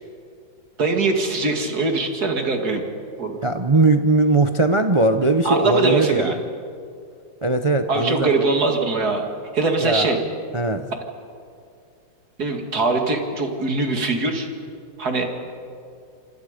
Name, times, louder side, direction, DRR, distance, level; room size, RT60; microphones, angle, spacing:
voice 1, 0.8-2.8 3.2-3.4 5.4-6.4 7.9-9.2 9.5-10.2 12.4-14.5 15.0-15.3, right 3 dB, 55° right, 3 dB, 2.7 m, -22 dB
voice 2, 3.4-6.4 7.4-8.3 9.8-10.2 10.5-10.9, right 2 dB, 35° right, 7 dB, 0.4 m, -19 dB
26.5 x 26.0 x 5.2 m, 2.4 s
omnidirectional pair, 2.0 m